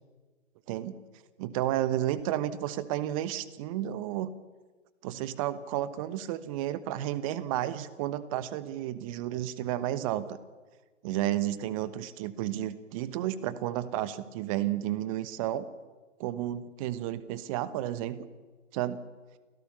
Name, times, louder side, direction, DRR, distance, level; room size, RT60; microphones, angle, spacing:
voice 1, 1.4-4.3 5.0-10.4 11.0-15.7 16.2-18.3 18.7-19.0, right 13 dB, 25° right, 15 dB, 1.2 m, -32 dB
30.0 x 16.0 x 7.1 m, 1.3 s
figure-of-eight pair, 130°, 38 cm